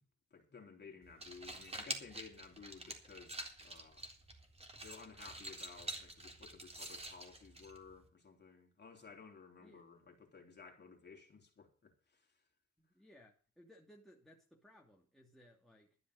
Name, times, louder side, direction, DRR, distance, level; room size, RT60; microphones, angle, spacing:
voice 1, 0.3-4.1 4.8-12.4, left 5 dB, 35° left, 3.7 m, -56 dB
sound 1, 1.0-8.1, right 1 dB, 20° right, 3.7 m, -48 dB
voice 2, 12.8-16.0, equal, ahead, 2.8 m, -62 dB
12.5 x 9.9 x 6.4 m
cardioid pair, 90°, 30 cm